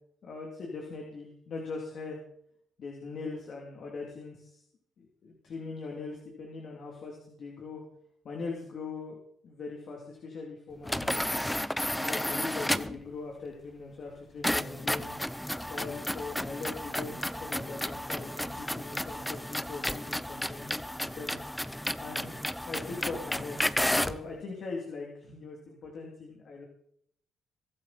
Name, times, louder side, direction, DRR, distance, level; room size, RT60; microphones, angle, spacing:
voice 1, 0.2-2.2 2.8-4.6 5.0-7.8 8.2-9.2 9.4-11.4 12.0-15.2 15.7-21.5 22.0-22.4 22.7-26.6, left 4 dB, 60° left, 0 dB, 3.2 m, -41 dB
sound 1, 10.8-13.0 14.4-24.2, left 1 dB, 5° left, 0.7 m, -32 dB
23.0 x 12.0 x 4.4 m, 0.70 s
cardioid pair, 90°, 0 cm